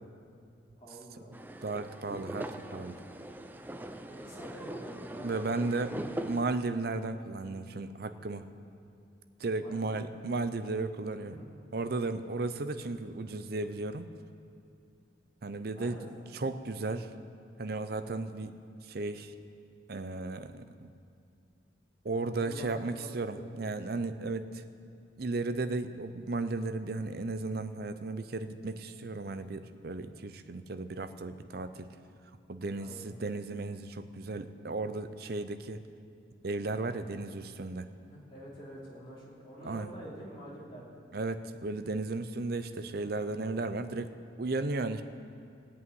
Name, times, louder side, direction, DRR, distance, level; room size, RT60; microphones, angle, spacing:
voice 1, 0.8-1.4 4.1-5.8 7.3-7.4 9.6-10.2 11.2-11.5 15.6-16.1 22.2-23.7 32.7-33.0 38.1-41.0, right 1 dB, 30° left, -6 dB, 3.0 m, -48 dB
sound 1, 1.3-6.4, right 1 dB, 10° right, 0.5 m, -41 dB
voice 2, 1.6-3.0 5.2-8.5 9.4-11.4 11.7-14.1 15.4-16.0 16.3-17.1 17.6-18.5 18.9-19.3 19.9-20.9 22.0-24.6 25.2-31.9 32.5-35.8 36.4-37.9 39.6-39.9 41.1-44.1 44.4-45.0, right 3 dB, 55° right, 10 dB, 0.6 m, -35 dB
16.5 x 5.6 x 9.4 m, 2.4 s
head